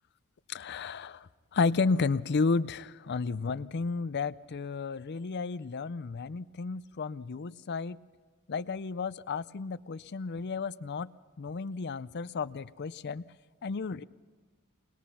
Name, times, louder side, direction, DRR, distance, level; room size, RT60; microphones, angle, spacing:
voice 1, 0.5-8.0 8.5-11.1 11.4-13.2 13.6-14.0, left 4 dB, 50° left, 16 dB, 0.5 m, -32 dB
23.0 x 20.5 x 5.7 m, 1.4 s
head